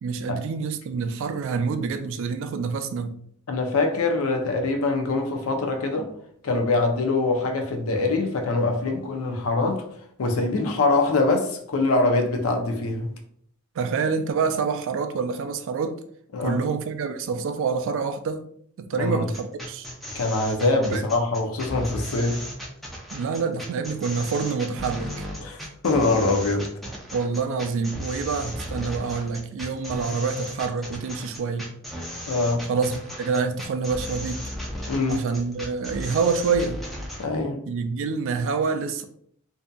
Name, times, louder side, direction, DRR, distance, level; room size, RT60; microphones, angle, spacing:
voice 1, 0.0-3.2 13.8-16.0 16.4-18.5 18.8-19.9 20.9-21.0 23.1-25.2 27.1-31.7 32.7-34.5 35.1-36.8 37.7-39.0, right 5 dB, 65° right, 8 dB, 0.3 m, -27 dB
voice 2, 3.5-6.1 6.4-9.9 10.2-13.1 16.3-16.6 19.0-19.2 20.1-22.4 25.4-26.7 32.3-32.7 34.9-35.2 37.2-37.6, left 3 dB, 70° left, 4 dB, 0.5 m, -23 dB
sound 1, 19.3-37.3, equal, ahead, 0.5 m, -35 dB
2.6 x 2.4 x 2.2 m, 0.65 s
head